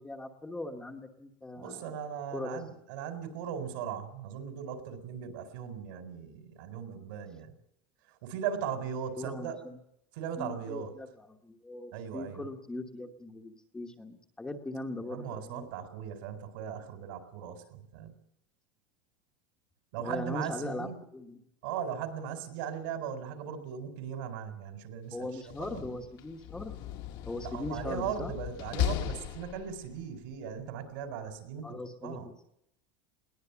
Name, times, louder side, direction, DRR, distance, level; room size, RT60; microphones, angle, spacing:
voice 1, 0.0-2.0 2.3-2.6 9.2-9.8 10.4-15.7 20.0-21.5 25.1-26.8 27.3-28.3 31.6-32.3, left 2 dB, 5° left, 3 dB, 1.1 m, -40 dB
voice 2, 1.5-7.5 8.1-9.6 10.1-10.9 11.9-12.5 15.0-18.1 19.9-21.0 21.6-25.9 27.4-32.3, right 8 dB, 70° right, 7 dB, 4.4 m, -38 dB
Slam, 25.3-30.0, left 10 dB, 40° left, 1.2 m, -37 dB
21.0 x 19.5 x 7.0 m, 0.78 s
supercardioid pair, 175°, 12 cm